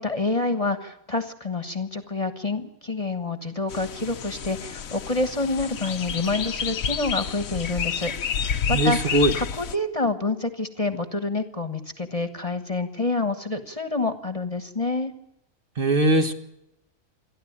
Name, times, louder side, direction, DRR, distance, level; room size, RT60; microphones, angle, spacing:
voice 1, 0.0-15.1, left 3 dB, 25° left, 9 dB, 1.4 m, -28 dB
sound 1, 3.7-9.8, left 7 dB, 85° left, 1.4 m, -30 dB
voice 2, 8.7-9.3 15.8-16.3, right 1 dB, 40° right, 5 dB, 1.7 m, -20 dB
28.0 x 11.5 x 8.8 m, 0.85 s
omnidirectional pair, 1.4 m